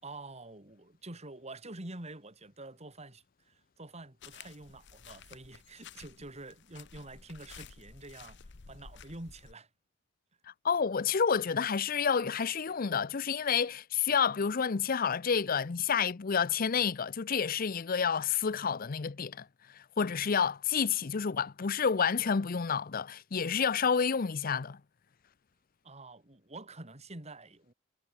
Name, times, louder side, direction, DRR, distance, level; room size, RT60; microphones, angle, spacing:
voice 1, 0.0-8.4 8.7-9.7 25.8-27.7, right 2 dB, 30° right, 3.3 m, -47 dB
sound 1, 4.2-9.5, left 6 dB, 60° left, 0.9 m, -53 dB
voice 2, 10.6-24.8, left 6 dB, 45° left, 0.6 m, -29 dB
head